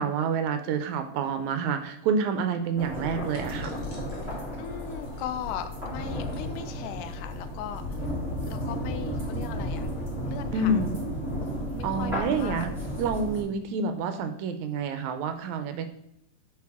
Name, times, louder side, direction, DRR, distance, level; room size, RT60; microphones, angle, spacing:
voice 1, 0.0-3.7 10.5-11.0 11.8-12.7 13.0-15.9, right 4 dB, 80° right, 8 dB, 1.9 m, -28 dB
sound 1, 2.8-13.4, equal, ahead, 2.5 m, -33 dB
sound 2, 3.2-14.3, equal, 65° left, 0.6 m, -50 dB
voice 2, 4.6-8.1 8.5-10.8 11.2-12.7, left 8 dB, 85° left, 10 dB, 2.2 m, -39 dB
9.3 x 4.6 x 3.6 m, 0.78 s
omnidirectional pair, 3.5 m